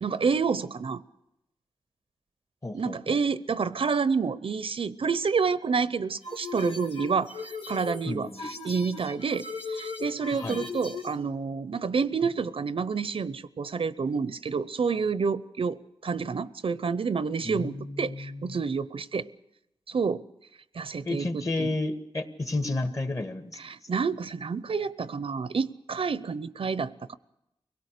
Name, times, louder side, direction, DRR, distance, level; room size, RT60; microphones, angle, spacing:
voice 1, 0.0-1.0 2.7-19.3 19.9-20.2 20.7-21.7 23.6-27.2, right 5 dB, 70° right, 16 dB, 0.7 m, -29 dB
voice 2, 2.6-3.2 8.0-8.4 10.3-10.6 17.4-18.6 21.0-23.6, left 2 dB, 35° left, 9 dB, 1.8 m, -32 dB
sound 1, 6.2-11.1, left 4 dB, 80° left, 2.7 m, -38 dB
24.0 x 17.5 x 6.7 m, 0.85 s
wide cardioid pair, 105°, 10 cm